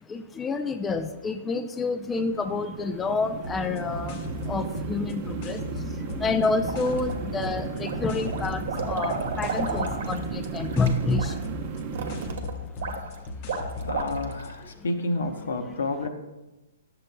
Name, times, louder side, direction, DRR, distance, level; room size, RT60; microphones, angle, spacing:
voice 1, 0.1-4.2 4.5-5.6 6.1-11.3, left 4 dB, 15° left, 8 dB, 0.3 m, -28 dB
sound 1, 1.8-12.4, right 6 dB, 40° right, 0.7 m, -35 dB
sound 2, 3.4-14.6, left 4 dB, 40° left, 0.8 m, -38 dB
sound 3, 6.6-7.4 7.8-14.5, right 4 dB, 60° right, 1.0 m, -33 dB
voice 2, 13.8-16.1, left 2 dB, 70° left, 6 dB, 0.9 m, -30 dB
11.0 x 6.9 x 2.2 m, 1.0 s
figure-of-eight pair, 120°, 0 cm